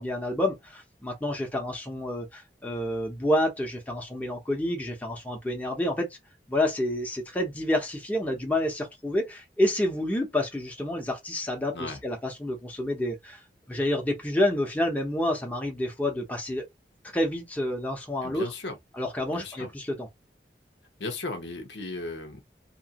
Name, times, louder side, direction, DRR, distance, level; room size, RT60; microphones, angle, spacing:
voice 1, 0.0-6.1 6.5-13.4 13.7-16.6 17.1-18.5 18.9-20.1, left 1 dB, 10° left, 0.9 m, -29 dB
voice 2, 18.2-18.8 19.3-19.7 21.0-22.4, left 2 dB, 80° left, 1.0 m, -36 dB
3.0 x 2.7 x 2.9 m
head